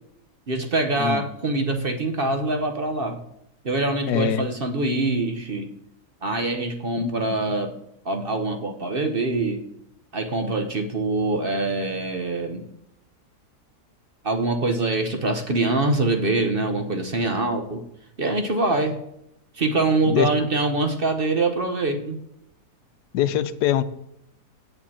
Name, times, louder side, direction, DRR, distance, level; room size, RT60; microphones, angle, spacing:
voice 1, 0.5-3.2 3.6-5.7 6.2-7.7 8.0-9.6 10.1-12.6 14.2-17.8 18.2-19.0 19.5-22.2, right 2 dB, 40° right, 5 dB, 1.0 m, -24 dB
voice 2, 4.1-4.5 7.0-7.5 17.2-17.3 20.1-20.5 23.1-23.8, left 11 dB, 80° left, 13 dB, 1.2 m, -24 dB
8.6 x 7.8 x 4.3 m, 0.79 s
omnidirectional pair, 1.7 m